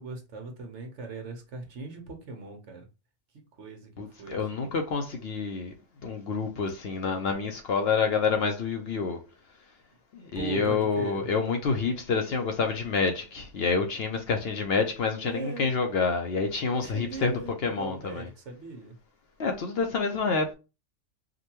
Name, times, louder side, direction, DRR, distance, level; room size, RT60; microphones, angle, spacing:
voice 1, 0.0-2.9 3.6-4.7 10.3-11.3 15.2-15.9 16.7-19.0 19.8-20.4, right 4 dB, 65° right, 1.2 m, -40 dB
voice 2, 4.0-5.7 6.0-9.2 10.1-18.3 19.4-20.5, left 4 dB, 60° left, 0.8 m, -28 dB
5.0 x 2.3 x 2.9 m
omnidirectional pair, 1.3 m